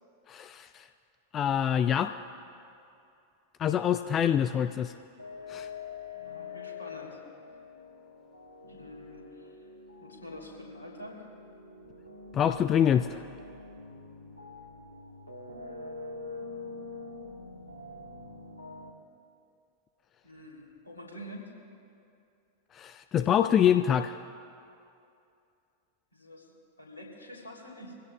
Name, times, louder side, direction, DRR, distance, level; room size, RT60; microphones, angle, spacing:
voice 1, 0.3-0.9 1.3-2.1 3.6-4.9 5.5-5.7 12.3-13.2 22.7-24.2, left 9 dB, 30° left, 10 dB, 0.3 m, -25 dB
sound 1, 5.2-18.9, left 4 dB, 90° right, 1.5 m, -45 dB
voice 2, 6.2-7.2 8.7-9.6 10.0-11.3 20.2-21.5 26.1-27.9, left 1 dB, 75° left, -2 dB, 3.1 m, -46 dB
23.5 x 16.5 x 2.3 m, 2.6 s
figure-of-eight pair, 90°, 0 cm